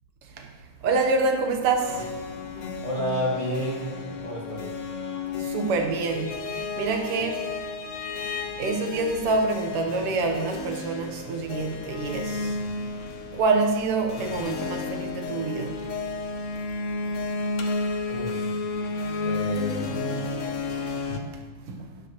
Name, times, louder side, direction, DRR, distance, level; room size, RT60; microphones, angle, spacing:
voice 1, 0.8-2.1 5.4-7.5 8.6-12.6 13.3-15.8 21.7-21.9, right 3 dB, 85° right, 4 dB, 2.0 m, -26 dB
sound 1, 1.8-21.2, left 3 dB, 65° left, 0.7 m, -32 dB
voice 2, 2.8-4.7 18.1-18.5 19.2-20.0, equal, 15° left, -4 dB, 1.6 m, -30 dB
12.0 x 10.5 x 3.0 m, 1.3 s
omnidirectional pair, 2.4 m